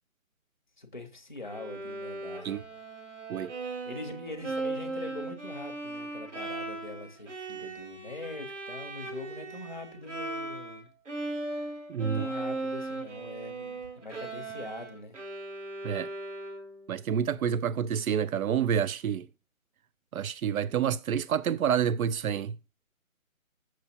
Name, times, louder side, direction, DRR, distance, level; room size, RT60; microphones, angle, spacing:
voice 1, 0.8-2.7 3.9-10.9 11.9-15.2, left 2 dB, 35° left, 0.6 m, -43 dB
Bowed string instrument, 1.4-10.8 11.1-16.9, right 2 dB, 60° right, 1.5 m, -38 dB
voice 2, 11.9-12.3 15.8-16.1 16.9-19.3 20.1-22.6, right 8 dB, 85° right, 0.5 m, -28 dB
6.1 x 5.9 x 2.8 m
hypercardioid pair, 180°, 41 cm